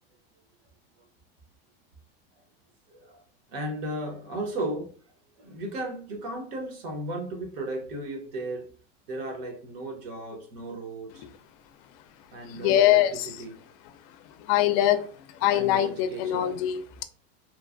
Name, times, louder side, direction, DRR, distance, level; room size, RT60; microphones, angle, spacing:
voice 1, 2.9-3.2 3.5-5.0 5.4-8.7 9.1-11.2 12.3-13.5 15.5-16.5, right 1 dB, 70° right, 1.1 m, -35 dB
voice 2, 12.5-13.3 14.4-15.1 15.3-17.0, left 12 dB, 50° left, 0.4 m, -23 dB
3.1 x 2.2 x 2.5 m
supercardioid pair, 130°, 30 cm